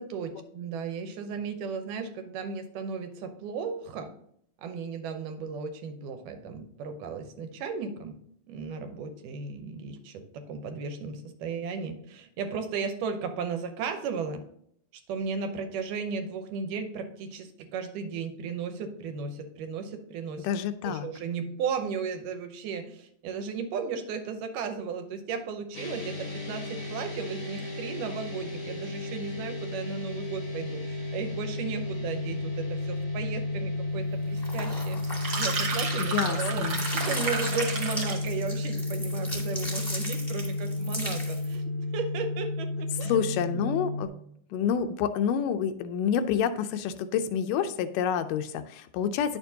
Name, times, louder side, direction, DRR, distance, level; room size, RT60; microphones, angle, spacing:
voice 1, 0.0-4.1 4.6-8.2 8.5-14.4 15.1-20.5 20.8-35.0 35.4-43.7 44.5-44.7, right 5 dB, 80° right, 7 dB, 2.3 m, -35 dB
voice 2, 20.4-21.1 36.0-36.9 43.0-44.1 44.5-49.4, left 8 dB, 85° left, 10 dB, 2.2 m, -28 dB
sound 1, 25.7-44.1, left 2 dB, 45° left, 0.9 m, -33 dB
sound 2, 34.4-36.3 36.6-41.6, equal, 10° left, 1.0 m, -37 dB
sound 3, 35.0-38.3, right 4 dB, 55° right, 1.4 m, -32 dB
10.0 x 6.8 x 2.7 m, 0.67 s
omnidirectional pair, 3.8 m